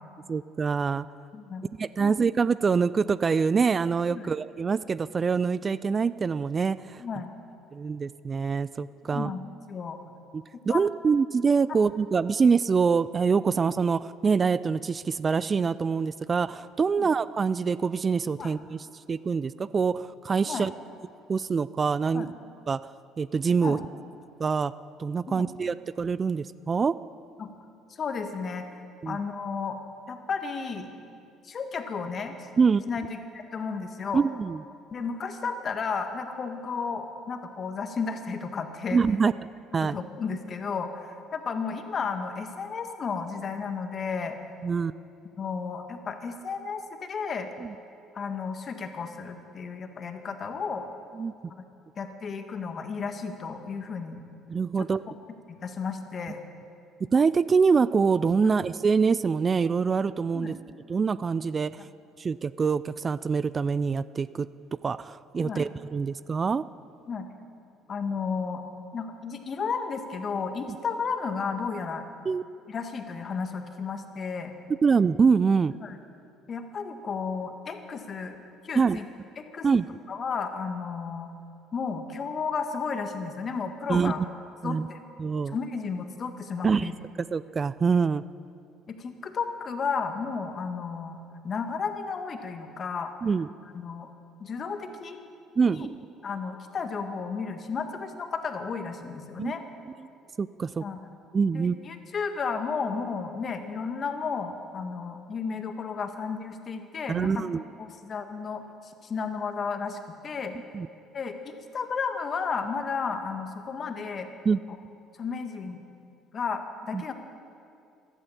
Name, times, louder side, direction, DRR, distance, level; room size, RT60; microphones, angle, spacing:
voice 1, 0.3-1.1 1.8-7.0 7.7-9.3 10.3-18.8 19.1-20.7 21.3-22.3 22.7-22.8 23.2-23.8 24.4-24.7 25.0-26.9 29.0-29.2 32.6-32.8 34.1-34.6 38.9-39.3 39.7-40.0 44.6-44.9 47.6-47.7 51.2-51.3 54.5-55.0 57.1-60.5 60.9-61.9 62.2-64.5 64.8-66.6 72.3-72.4 74.8-75.7 78.8-79.0 79.6-79.9 83.9-84.1 84.6-84.9 85.2-85.6 86.6-86.9 87.3-88.2 93.2-93.5 95.6-96.0 99.4-99.5 100.4-100.8 101.3-101.8 107.1-107.6 110.7-110.9 114.5-114.6 116.9-117.0, right 5 dB, 35° right, 17 dB, 0.4 m, -25 dB
voice 2, 1.3-1.6 2.0-2.2 4.1-4.3 7.0-7.3 9.1-10.0 10.7-10.9 17.0-17.1 18.4-18.5 20.5-20.7 22.1-22.3 23.6-23.8 25.3-25.5 27.4-27.5 27.9-28.7 29.0-29.8 30.1-30.9 31.4-32.5 32.9-34.2 34.9-39.0 39.8-44.4 45.4-47.5 48.1-50.8 52.0-54.2 54.8-54.9 55.5-56.4 60.3-60.6 61.8-61.9 65.4-65.6 67.1-67.3 67.9-68.6 68.9-72.1 72.7-74.5 75.8-76.0 76.5-78.4 78.6-79.0 79.5-79.7 80.1-81.3 81.7-84.2 84.6-85.0 85.5-86.9 88.9-91.2 91.4-93.1 93.7-94.1 94.4-95.2 95.7-95.9 96.2-99.6 100.8-101.0 101.5-107.4 107.8-110.6 111.1-114.3 114.7-114.8 115.2-115.8 116.3-117.1, left 5 dB, 45° left, 6 dB, 1.7 m, -33 dB
14.5 x 13.0 x 7.2 m, 2.5 s
hypercardioid pair, 60°, 0 cm